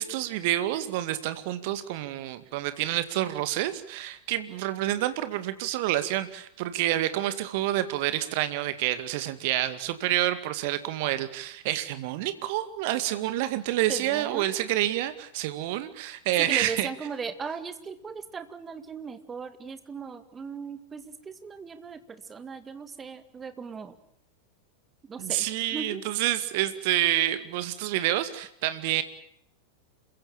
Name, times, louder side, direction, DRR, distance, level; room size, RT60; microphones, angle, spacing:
voice 1, 0.0-16.9 25.2-29.0, right 14 dB, 50° right, 12 dB, 2.1 m, -28 dB
voice 2, 13.9-14.5 16.4-24.0 25.0-26.0, right 5 dB, 20° right, 11 dB, 2.2 m, -38 dB
28.0 x 15.5 x 8.9 m, 0.72 s
figure-of-eight pair, 90°, 0 cm